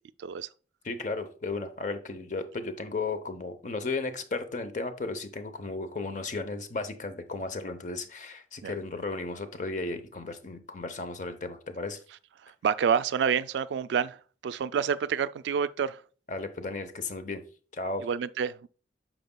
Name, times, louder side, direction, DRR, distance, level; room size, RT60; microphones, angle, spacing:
voice 1, 0.2-0.5 8.6-8.7 12.4-16.0 18.0-18.7, right 7 dB, 80° right, 0.3 m, -28 dB
voice 2, 0.8-12.0 16.3-17.4 17.7-18.1, left 3 dB, 45° left, 0.7 m, -34 dB
9.1 x 5.9 x 2.2 m
head